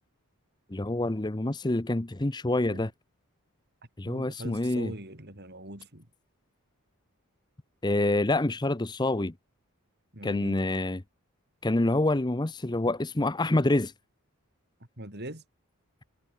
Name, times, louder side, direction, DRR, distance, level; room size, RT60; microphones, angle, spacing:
voice 1, 0.7-2.9 4.0-4.9 7.8-9.3 10.2-11.0 11.6-13.9, left 2 dB, 20° left, 0.7 m, -27 dB
voice 2, 4.0-6.1 10.1-10.6 15.0-15.4, right 1 dB, 45° right, 5.4 m, -41 dB
head